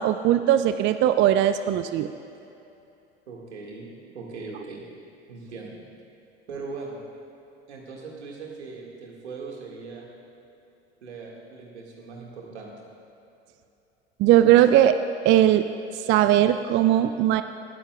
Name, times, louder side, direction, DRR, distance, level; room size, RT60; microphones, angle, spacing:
voice 1, 0.0-2.1 14.2-15.0 15.2-15.7 15.9-17.4, right 12 dB, 35° right, 10 dB, 0.4 m, -19 dB
voice 2, 3.3-4.8 5.3-5.8 6.5-7.0 7.7-10.1 11.0-12.8, right 4 dB, 80° right, -1 dB, 2.0 m, -39 dB
18.5 x 13.0 x 2.4 m, 2.8 s
figure-of-eight pair, 70°, 33 cm